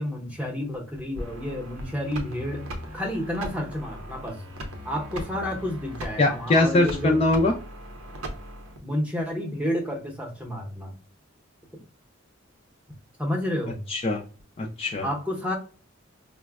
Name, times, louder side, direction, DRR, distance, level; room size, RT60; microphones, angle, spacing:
voice 1, 0.0-2.6 2.9-4.4 4.8-7.2 8.8-10.9 13.2-13.8 15.0-15.6, left 1 dB, 5° right, 0 dB, 0.8 m, -30 dB
sound 1, 1.2-8.8, equal, 85° right, 0.8 m, -38 dB
voice 2, 6.2-7.5 13.9-14.2 14.6-15.1, left 2 dB, 30° left, 0 dB, 0.4 m, -22 dB
4.8 x 2.1 x 2.3 m, 0.38 s
head